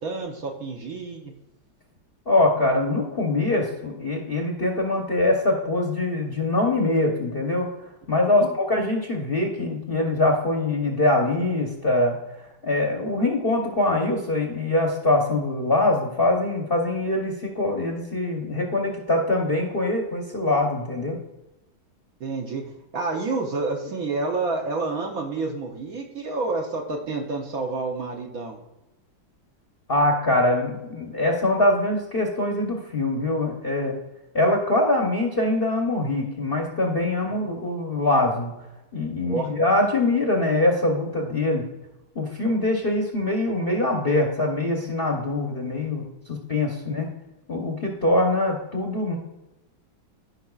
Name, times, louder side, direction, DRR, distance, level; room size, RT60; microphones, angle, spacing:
voice 1, 0.0-1.3 8.4-8.5 22.2-22.6 22.9-28.6 39.2-39.5, right 3 dB, 60° right, 1 dB, 1.1 m, -29 dB
voice 2, 2.3-7.7 8.1-12.2 12.6-21.2 29.9-34.0 34.3-38.5 38.9-41.7 42.1-47.1 47.5-49.2, left 2 dB, 40° left, 1 dB, 0.9 m, -23 dB
14.5 x 5.3 x 2.4 m, 0.96 s
omnidirectional pair, 2.0 m